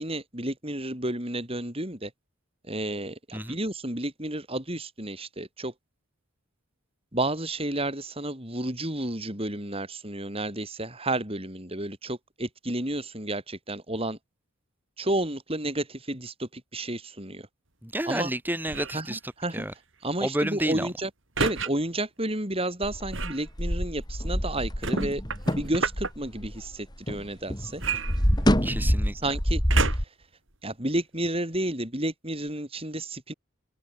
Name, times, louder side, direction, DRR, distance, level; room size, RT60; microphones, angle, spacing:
voice 1, 0.0-2.1 2.6-5.7 7.1-14.2 15.0-17.5 18.1-18.3 18.9-19.7 20.0-21.1 21.4-25.2 25.5-27.8 29.1-30.1 30.6-33.3, right 1 dB, 25° right, 6.8 m, -31 dB
voice 2, 17.8-19.2 19.5-19.7 20.2-20.9 28.6-29.1, right 1 dB, 10° right, 7.8 m, -30 dB
sound 1, 18.7-19.1 21.4-21.7 23.1-23.4 24.8-26.1 27.8-28.8 29.7-30.2 30.9-31.0, right 5 dB, 65° right, 3.7 m, -30 dB
sound 2, 22.8-27.2 27.5-30.0, equal, 20° left, 7.7 m, -26 dB
head